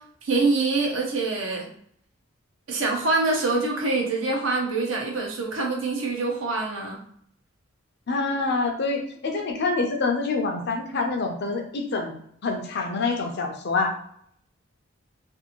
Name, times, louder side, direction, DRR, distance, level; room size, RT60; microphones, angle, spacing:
voice 1, 0.2-1.7 2.7-7.0, right 3 dB, 75° right, -1 dB, 0.8 m, -25 dB
voice 2, 8.1-12.1 12.4-13.9, left 3 dB, 55° left, 3 dB, 0.5 m, -26 dB
2.6 x 2.5 x 2.9 m, 0.66 s
head